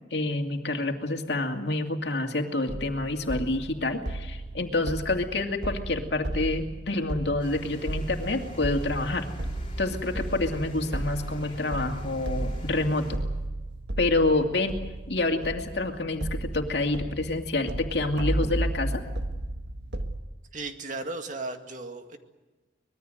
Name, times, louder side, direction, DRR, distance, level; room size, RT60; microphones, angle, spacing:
voice 1, 0.1-9.3 9.8-13.2 14.0-14.7 15.1-19.0, left 2 dB, 65° left, 3 dB, 2.5 m, -28 dB
sound 1, 2.7-20.2, right 1 dB, 70° right, 1.7 m, -34 dB
sound 2, 7.4-13.2, equal, 30° left, 4.8 m, -41 dB
voice 2, 20.5-22.2, right 3 dB, 45° right, 5 dB, 2.1 m, -35 dB
25.0 x 21.0 x 7.9 m, 1.2 s
head